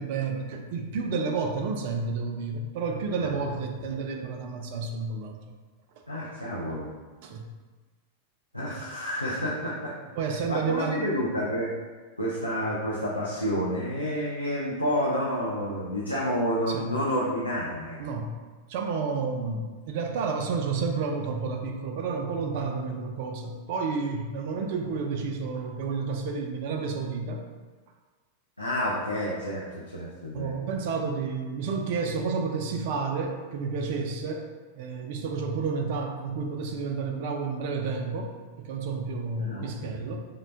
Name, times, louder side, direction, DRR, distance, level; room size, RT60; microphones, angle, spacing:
voice 1, 0.0-5.4 7.2-7.5 10.1-11.1 16.7-16.9 18.0-18.3 18.7-27.4 30.3-34.5 34.8-38.3 38.6-40.2, right 4 dB, 50° right, 3 dB, 0.3 m, -30 dB
voice 2, 6.1-6.9 8.5-10.0 10.5-11.7 12.2-18.0 28.6-29.6 29.9-30.5 39.4-40.0, equal, 85° left, -7 dB, 0.4 m, -29 dB
3.5 x 2.1 x 2.5 m, 1.4 s
figure-of-eight pair, 90°, 0 cm